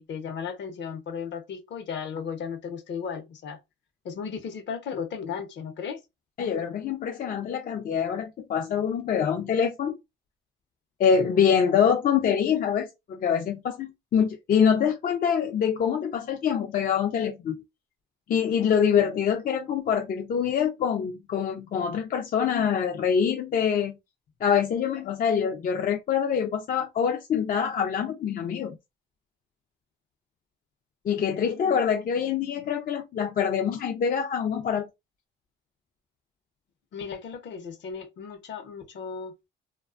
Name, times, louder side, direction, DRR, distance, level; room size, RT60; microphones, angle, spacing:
voice 1, 0.0-3.6 4.0-6.0 36.9-39.3, left 6 dB, 65° left, 0.7 m, -35 dB
voice 2, 6.4-10.0 11.0-17.6 18.3-24.0 24.4-28.8 31.1-34.9, left 7 dB, 45° left, 0.4 m, -25 dB
2.4 x 2.2 x 2.3 m
cardioid pair, 90°, 20 cm